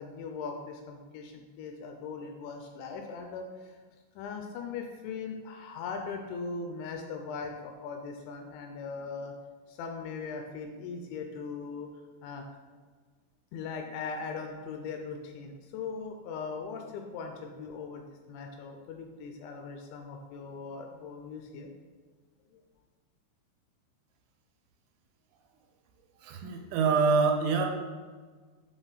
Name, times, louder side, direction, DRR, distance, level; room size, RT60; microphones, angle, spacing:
voice 1, 0.0-3.8 4.2-9.3 9.7-11.9 12.2-12.4 13.5-21.7, left 5 dB, 80° left, 3 dB, 2.7 m, -39 dB
voice 2, 26.2-27.7, right 5 dB, 85° right, 3 dB, 3.2 m, -25 dB
8.0 x 3.9 x 4.0 m, 1.5 s
omnidirectional pair, 5.5 m